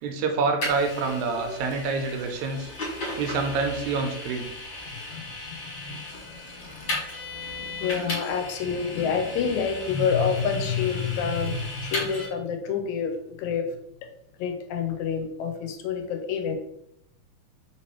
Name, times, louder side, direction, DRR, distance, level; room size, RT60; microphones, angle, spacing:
voice 1, 0.0-2.7 3.2-4.5, right 4 dB, 85° right, 4 dB, 2.0 m, -27 dB
Vehicle, 0.6-12.3, left 1 dB, 50° left, 1.9 m, -36 dB
voice 2, 4.9-7.0 7.3-13.7 14.4-16.6, left 6 dB, 80° left, 5 dB, 1.9 m, -28 dB
4.5 x 3.1 x 2.9 m, 0.78 s
omnidirectional pair, 3.3 m